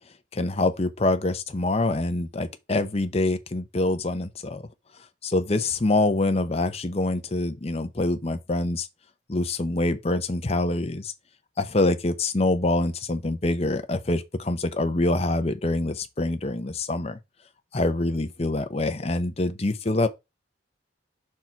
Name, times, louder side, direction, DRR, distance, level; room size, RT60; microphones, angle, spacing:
voice 1, 0.3-4.7 5.2-8.9 9.3-11.1 11.6-17.2 17.7-20.1, left 2 dB, 30° left, 0.7 m, -25 dB
5.8 x 4.4 x 4.5 m
head